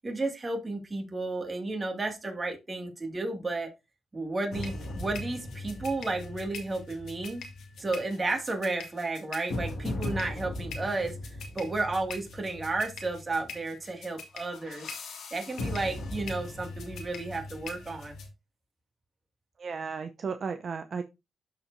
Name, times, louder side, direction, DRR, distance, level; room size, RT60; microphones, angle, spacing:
voice 1, 0.0-3.7 4.1-7.4 7.8-14.9 15.3-18.2, right 2 dB, 25° right, 3 dB, 2.1 m, -33 dB
sound 1, 4.5-18.3, left 2 dB, 80° left, 2.0 m, -39 dB
voice 2, 19.6-21.0, right 5 dB, 50° right, 8 dB, 0.6 m, -34 dB
12.5 x 4.5 x 2.6 m, 0.24 s
cardioid pair, 110°, 0 cm